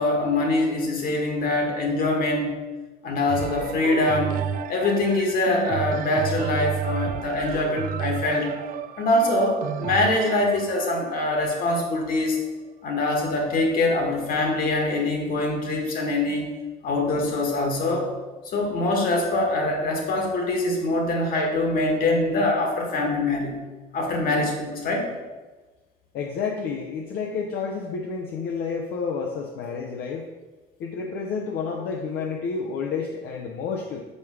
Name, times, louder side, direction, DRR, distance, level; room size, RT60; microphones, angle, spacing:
voice 1, 0.0-2.6 3.0-4.4 4.7-8.5 9.0-12.4 12.8-16.5 16.8-18.1 18.5-23.6 23.9-25.1, left 2 dB, 60° left, 2 dB, 1.8 m, -24 dB
sound 1, 3.3-13.1 13.7-13.8, right 9 dB, 55° right, 0.4 m, -32 dB
voice 2, 26.1-30.3 30.8-34.0, left 5 dB, 75° left, 1 dB, 0.8 m, -30 dB
5.4 x 4.8 x 6.2 m, 1.3 s
cardioid pair, 110°, 17 cm